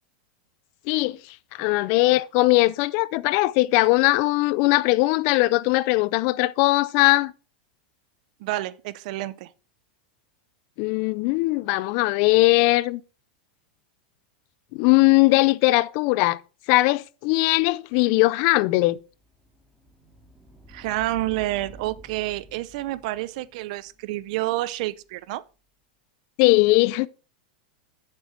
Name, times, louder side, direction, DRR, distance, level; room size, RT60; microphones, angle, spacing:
voice 1, 0.9-1.2 1.5-7.3 10.8-13.0 14.7-16.4 16.7-19.0 26.4-27.1, left 21 dB, 50° left, 0.5 m, -20 dB
voice 2, 8.4-9.5 20.7-25.4, right 17 dB, 60° right, 0.5 m, -29 dB
sound 1, 18.5-25.4, right 2 dB, ahead, 2.2 m, -51 dB
8.5 x 7.5 x 4.4 m
supercardioid pair, 135°, 5 cm